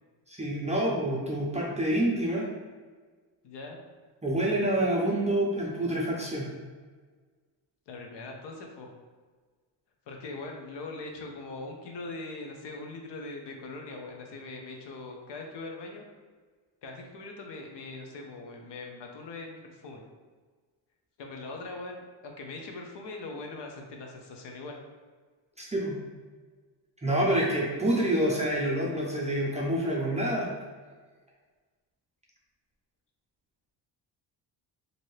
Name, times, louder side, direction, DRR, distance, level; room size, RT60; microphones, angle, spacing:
voice 1, 0.3-2.4 4.2-6.5 25.6-26.0 27.0-30.5, right 1 dB, 15° right, -4 dB, 0.4 m, -27 dB
voice 2, 3.4-3.8 7.9-8.9 10.1-16.0 16.8-20.0 21.2-24.7 27.8-27.9, left 3 dB, 60° left, 2 dB, 0.7 m, -41 dB
2.7 x 2.6 x 3.1 m, 1.5 s
cardioid pair, 110°, 47 cm